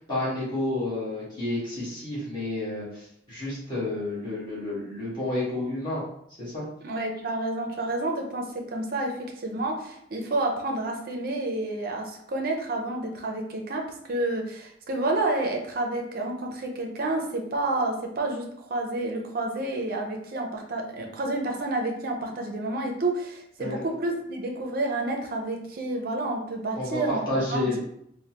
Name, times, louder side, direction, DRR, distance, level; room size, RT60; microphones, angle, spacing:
voice 1, 0.0-6.0 6.4-6.6 23.6-23.8 26.7-27.8, left 1 dB, 25° left, -10 dB, 1.4 m, -30 dB
voice 2, 6.8-9.1 9.4-13.8 14.1-27.6, right 2 dB, 50° right, 2 dB, 0.5 m, -29 dB
3.3 x 2.1 x 2.8 m, 0.73 s
head